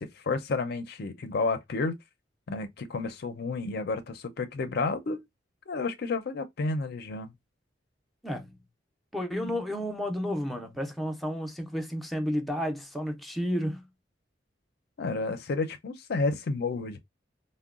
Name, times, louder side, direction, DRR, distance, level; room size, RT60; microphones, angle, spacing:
voice 1, 0.0-1.9 2.5-5.2 5.7-7.3 15.0-17.0, left 3 dB, 60° left, 0.5 m, -31 dB
voice 2, 8.2-8.6 9.1-13.9, equal, ahead, 0.5 m, -31 dB
3.7 x 2.1 x 2.3 m
head